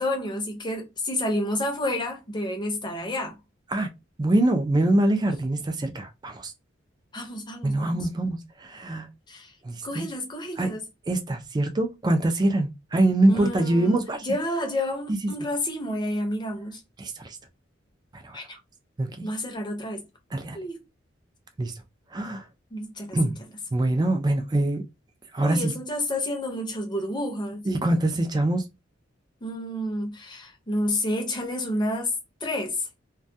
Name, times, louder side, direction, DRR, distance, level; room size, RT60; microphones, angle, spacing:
voice 1, 0.0-3.4 7.1-8.1 9.3-9.5 9.8-10.8 13.3-16.8 18.3-18.6 19.2-20.0 20.5-20.8 22.7-23.2 25.4-27.6 29.4-32.1 32.4-32.9, left 1 dB, 25° left, 0.6 m, -30 dB
voice 2, 4.2-6.5 7.6-9.1 9.6-10.0 10.6-10.7 11.1-14.3 17.0-17.4 18.1-18.4 19.0-19.3 20.3-20.6 21.6-21.7 22.1-22.4 23.1-23.3 23.7-24.8 25.3-25.7 27.7-28.6, right 1 dB, 20° right, 0.4 m, -24 dB
2.2 x 2.2 x 2.6 m
head